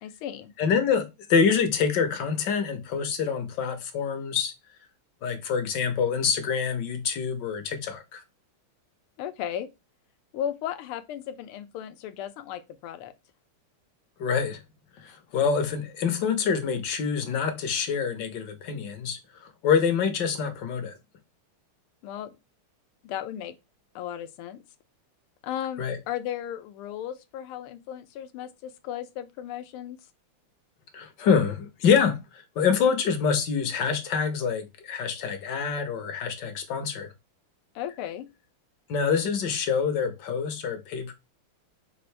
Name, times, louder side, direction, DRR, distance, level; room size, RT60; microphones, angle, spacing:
voice 1, 0.0-0.5 9.2-9.7 10.3-13.1 22.0-22.3 23.0-23.5 23.9-24.6 25.4-30.0 37.7-38.3, left 10 dB, 90° left, 1.5 m, -35 dB
voice 2, 0.6-4.5 5.2-8.2 14.2-14.6 15.0-20.9 25.8-26.0 30.9-37.1 38.9-41.1, left 6 dB, 65° left, 1.2 m, -26 dB
5.4 x 2.5 x 3.2 m
omnidirectional pair, 2.4 m